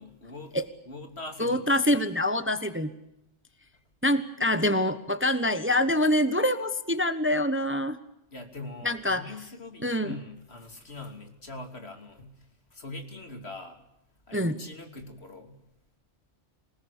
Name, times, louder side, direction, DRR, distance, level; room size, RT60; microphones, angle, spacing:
voice 1, 0.0-0.6 0.8-1.7 8.3-13.8 14.3-15.6, left 2 dB, 60° left, 5 dB, 3.3 m, -42 dB
voice 2, 1.4-2.9 4.0-8.0 8.8-9.2 9.8-10.2 14.3-14.6, left 1 dB, 10° right, 11 dB, 1.0 m, -25 dB
26.5 x 19.5 x 8.4 m, 0.83 s
omnidirectional pair, 1.2 m